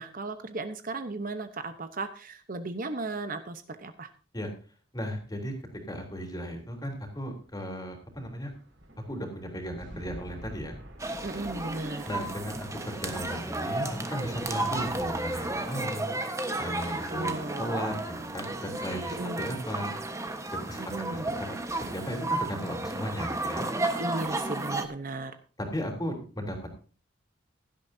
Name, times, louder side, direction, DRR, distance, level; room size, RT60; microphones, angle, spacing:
voice 1, 0.0-4.1 11.2-12.1 16.9-17.7 19.1-19.4 20.8-21.3 24.0-25.4, right 2 dB, 45° right, 9 dB, 0.9 m, -36 dB
voice 2, 4.9-5.5 5.9-8.5 9.1-10.8 12.1-16.2 16.6-19.9 20.5-20.8 21.1-21.5 21.9-23.6 25.6-26.7, equal, 20° left, 2 dB, 3.3 m, -36 dB
sound 1, 6.3-19.8, equal, 75° right, 4.9 m, -51 dB
sound 2, 11.0-24.9, right 2 dB, 15° right, 1.2 m, -33 dB
16.5 x 12.0 x 2.7 m, 0.38 s
head